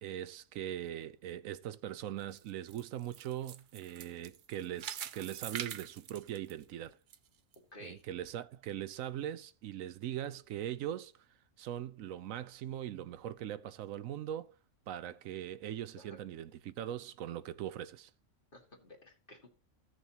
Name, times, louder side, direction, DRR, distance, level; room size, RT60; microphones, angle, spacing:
voice 1, 0.0-7.0 7.8-11.1 11.6-14.5 14.9-18.1, right 11 dB, 80° right, 1.0 m, -41 dB
sound 1, 2.2-7.2 7.5-7.6 8.2-8.3, right 9 dB, 60° right, 0.5 m, -44 dB
voice 2, 7.7-8.0 16.0-16.2 18.5-19.5, left 1 dB, 40° left, 2.2 m, -53 dB
16.0 x 6.3 x 2.9 m
omnidirectional pair, 1.4 m